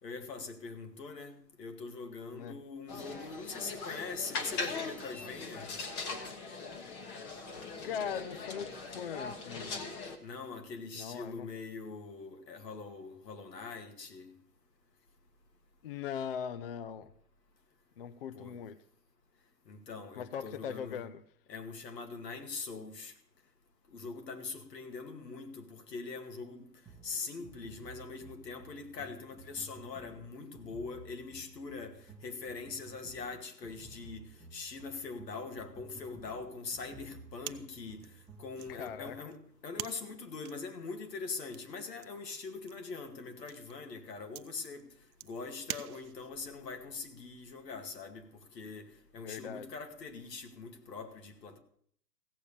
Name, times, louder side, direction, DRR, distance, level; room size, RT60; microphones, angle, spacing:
voice 1, 0.0-5.7 10.2-14.3 18.3-18.6 19.7-21.0 21.5-23.1 23.9-26.6 27.0-39.4 39.6-44.9 45.2-51.6, left 4 dB, 80° left, 2.3 m, -43 dB
sound 1, 2.9-10.2, left 3 dB, 20° left, 1.2 m, -40 dB
voice 2, 7.8-9.8 10.9-11.5 15.8-17.1 18.0-18.8 20.2-21.2 38.7-39.3 49.2-49.7, left 8 dB, 40° left, 0.5 m, -40 dB
sound 2, 26.9-39.3, right 4 dB, 5° right, 1.2 m, -54 dB
sound 3, 37.4-46.5, right 11 dB, 60° right, 0.8 m, -48 dB
15.5 x 7.0 x 6.8 m
hypercardioid pair, 145°, 48 cm